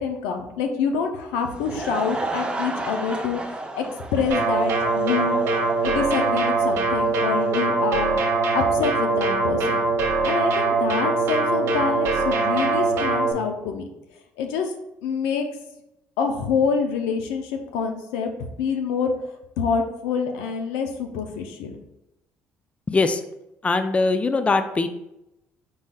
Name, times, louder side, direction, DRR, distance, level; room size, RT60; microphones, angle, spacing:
voice 1, 0.0-3.8 4.1-5.4 5.8-10.0 10.2-13.9 14.4-14.7 15.0-15.5 16.2-18.3 18.6-19.1 19.6-21.8, left 6 dB, 90° left, 5 dB, 0.6 m, -26 dB
Laughter / Crowd, 1.3-7.6, right 2 dB, 20° right, 0.6 m, -33 dB
sound 1, 4.3-13.3, right 3 dB, 70° right, 1.0 m, -22 dB
voice 2, 22.9-23.2 23.6-24.9, left 3 dB, 25° left, 9 dB, 0.4 m, -21 dB
4.7 x 4.1 x 2.3 m, 0.87 s
supercardioid pair, 70°, 5 cm